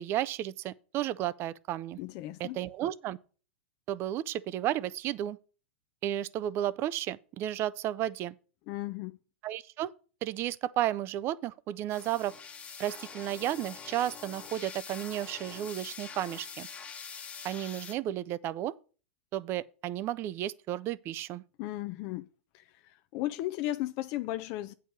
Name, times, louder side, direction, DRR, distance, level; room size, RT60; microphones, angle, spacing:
voice 1, 0.0-2.0 2.4-3.2 3.9-5.4 6.0-8.3 9.4-9.9 10.2-12.4 12.8-16.7 17.4-18.7 19.3-21.4, right 12 dB, 35° right, 0.5 m, -33 dB
voice 2, 2.0-2.6 8.7-9.1 21.6-22.3 22.5-24.7, left 15 dB, 45° left, 0.5 m, -35 dB
sound 1, 11.9-18.0, left 6 dB, 20° left, 1.1 m, -45 dB
8.6 x 4.8 x 6.9 m
hypercardioid pair, 125°, 7 cm